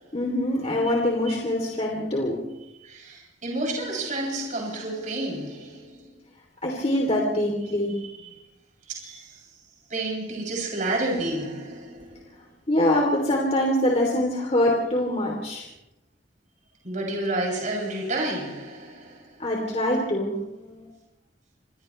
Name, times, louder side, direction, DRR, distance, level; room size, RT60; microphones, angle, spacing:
voice 1, 0.1-2.4 6.6-8.0 12.7-15.6 19.4-20.9, left 1 dB, 35° left, 3.2 m, -24 dB
voice 2, 2.8-6.1 8.0-8.3 8.8-9.5 9.9-12.2 16.8-19.4, right 2 dB, 45° right, 7.7 m, -30 dB
28.0 x 28.0 x 3.3 m
head